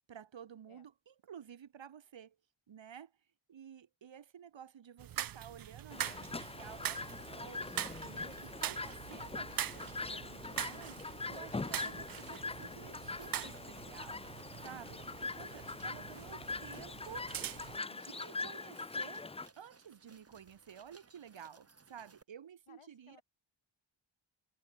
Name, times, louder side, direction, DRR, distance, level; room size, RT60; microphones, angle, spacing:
voice 1, 0.1-2.4 2.7-3.1 3.5-14.2 14.6-17.3 17.9-19.3 19.6-23.2, right 8 dB, 65° right, 1.4 m, -53 dB
sound 1, 5.0-17.8, right 10 dB, 50° right, 0.5 m, -43 dB
Chirp tweet, 5.9-19.5, left 3 dB, 15° left, 0.3 m, -43 dB
sound 2, 7.0-22.2, right 4 dB, 30° right, 2.1 m, -63 dB
voice 2, 16.1-17.9 22.7-23.2, left 7 dB, 85° left, 3.9 m, -65 dB
wide cardioid pair, 160°, 48 cm